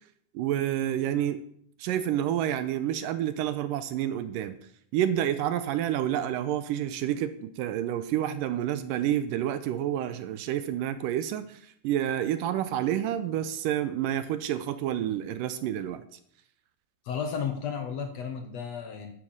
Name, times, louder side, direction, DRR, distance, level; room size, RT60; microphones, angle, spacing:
voice 1, 0.3-1.4 1.8-4.6 4.9-16.2, right 11 dB, 80° right, 12 dB, 2.2 m, -29 dB
voice 2, 17.0-19.1, left 7 dB, 65° left, 6 dB, 1.8 m, -33 dB
12.0 x 7.9 x 7.3 m, 0.67 s
omnidirectional pair, 4.1 m